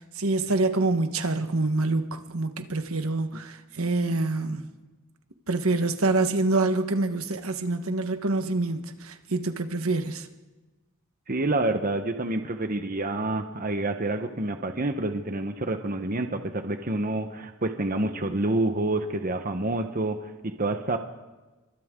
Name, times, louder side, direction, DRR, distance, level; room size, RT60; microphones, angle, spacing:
voice 1, 0.0-4.7 5.5-10.3, right 2 dB, 75° right, 1.4 m, -26 dB
voice 2, 11.3-21.0, right 2 dB, 40° right, 1.1 m, -28 dB
29.0 x 24.5 x 3.8 m
head